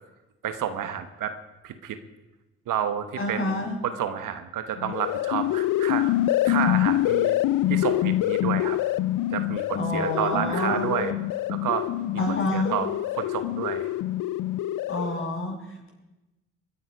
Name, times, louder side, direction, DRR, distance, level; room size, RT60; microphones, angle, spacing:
voice 1, 0.4-1.4 1.6-2.0 2.7-3.6 3.8-6.2 6.4-7.4 7.7-8.8 9.3-11.2 11.5-11.9 12.3-12.9 13.2-13.9, right 9 dB, 70° right, 10 dB, 1.1 m, -30 dB
voice 2, 3.2-3.8 9.7-10.9 12.2-12.7 14.9-15.6, left 1 dB, 40° left, -1 dB, 6.8 m, -28 dB
sound 1, 4.8-15.3, left 14 dB, 70° left, 0.5 m, -26 dB
22.5 x 9.6 x 5.2 m, 1.0 s
hypercardioid pair, 50°, 33 cm